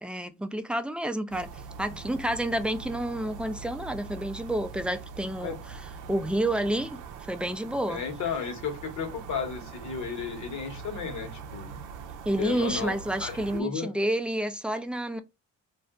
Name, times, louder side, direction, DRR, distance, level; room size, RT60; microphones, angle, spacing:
voice 1, 0.0-7.0 7.3-8.0 12.3-15.2, right 1 dB, 5° right, 0.4 m, -30 dB
sound 1, 1.3-13.6, right 5 dB, 80° right, 0.6 m, -43 dB
voice 2, 7.9-11.7 12.4-13.9, left 6 dB, 70° left, 1.2 m, -34 dB
2.5 x 2.1 x 3.6 m
cardioid pair, 90°, 30 cm